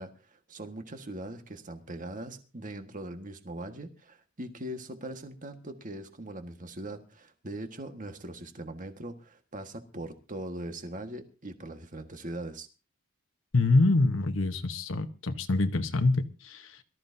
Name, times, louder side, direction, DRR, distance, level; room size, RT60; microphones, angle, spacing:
voice 1, 0.0-12.7, right 1 dB, 40° right, 1.6 m, -41 dB
voice 2, 13.5-16.7, left 2 dB, 70° left, 1.1 m, -25 dB
23.0 x 14.0 x 2.7 m
head